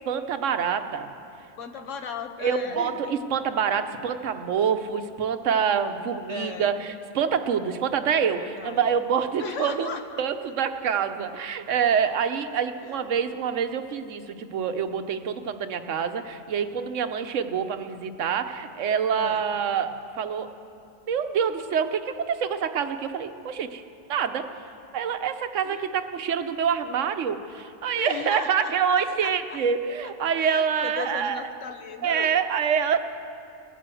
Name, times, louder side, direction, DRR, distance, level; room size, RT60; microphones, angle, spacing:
voice 1, 0.1-1.1 2.4-9.9 10.2-19.9 20.2-20.5 21.1-23.8 24.1-24.5 24.9-31.4 32.0-33.0, right 7 dB, 85° right, 9 dB, 1.1 m, -26 dB
voice 2, 1.6-3.1 6.3-6.7 8.4-8.9 9.4-10.2 12.8-13.1 19.1-19.4 25.6-25.9 28.0-28.7 29.2-29.6 30.4-32.3, left 5 dB, 85° left, 8 dB, 1.3 m, -36 dB
17.5 x 9.4 x 7.6 m, 2.7 s
omnidirectional pair, 1.3 m